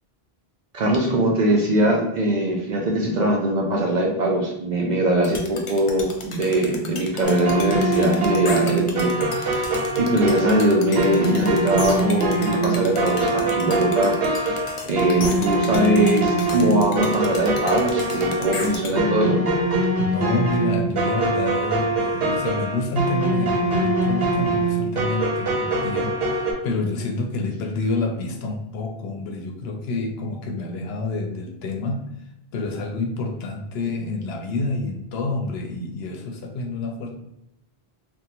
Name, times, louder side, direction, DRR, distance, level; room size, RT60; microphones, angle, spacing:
voice 1, 0.7-14.6 14.9-19.4, right 1 dB, 55° right, 0 dB, 0.5 m, -21 dB
sound 1, 5.2-18.9, left 3 dB, 55° left, 0.3 m, -34 dB
sound 2, 7.2-26.5, right 2 dB, 70° right, 0.9 m, -23 dB
voice 2, 20.0-32.0 32.5-37.1, left 3 dB, 80° left, 3 dB, 0.8 m, -28 dB
3.5 x 2.1 x 2.8 m, 0.81 s
omnidirectional pair, 1.0 m